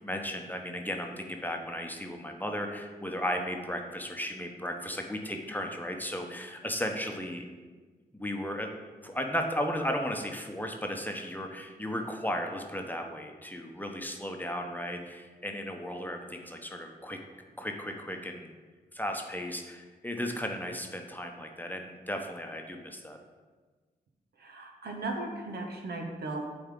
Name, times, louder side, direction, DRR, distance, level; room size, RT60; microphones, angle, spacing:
voice 1, 0.0-7.4 8.1-8.7 9.0-17.2 17.6-18.5 18.9-23.2, equal, 10° left, 3 dB, 0.9 m, -35 dB
voice 2, 24.4-26.5, right 2 dB, 70° right, 2 dB, 1.0 m, -36 dB
8.5 x 3.6 x 3.8 m, 1.4 s
supercardioid pair, 45°, 17 cm